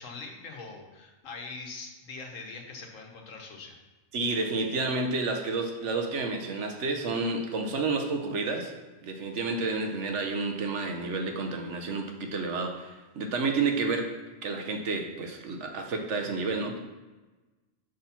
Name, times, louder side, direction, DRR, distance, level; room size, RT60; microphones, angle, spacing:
voice 1, 0.0-3.8, left 4 dB, 85° left, 2 dB, 1.4 m, -42 dB
voice 2, 4.1-8.7 9.0-16.8, right 3 dB, 70° right, 4 dB, 1.2 m, -30 dB
6.3 x 4.2 x 5.8 m, 1.2 s
omnidirectional pair, 1.3 m